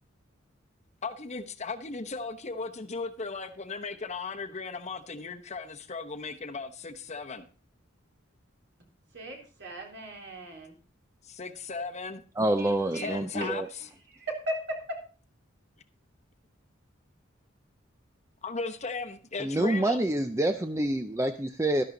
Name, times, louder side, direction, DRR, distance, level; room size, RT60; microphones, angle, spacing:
voice 1, 1.0-7.5 11.2-12.2 12.9-13.6 18.4-20.0, left 4 dB, 35° left, 7 dB, 1.0 m, -36 dB
voice 2, 9.1-10.8 12.6-13.5 14.1-15.0, right 1 dB, 60° right, 1 dB, 3.6 m, -37 dB
voice 3, 12.4-13.7 19.4-21.9, right 1 dB, 15° right, 8 dB, 0.6 m, -27 dB
13.0 x 11.0 x 3.9 m, 0.38 s
head